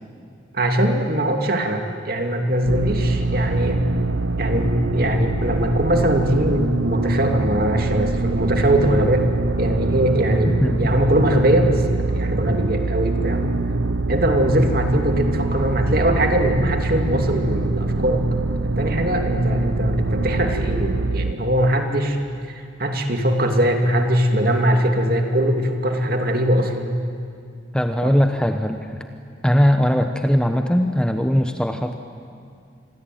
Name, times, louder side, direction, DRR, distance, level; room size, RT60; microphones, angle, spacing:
voice 1, 0.5-3.9 4.4-9.3 9.6-13.5 14.1-18.2 18.5-22.2 22.5-27.0 28.0-28.1, right 1 dB, 50° right, 3 dB, 2.7 m, -21 dB
sound 1, 2.7-21.3, right 3 dB, 85° right, 0.7 m, -24 dB
voice 2, 27.7-29.1 29.4-32.0, equal, 5° left, 6 dB, 0.9 m, -19 dB
27.5 x 22.0 x 9.3 m, 2.3 s
head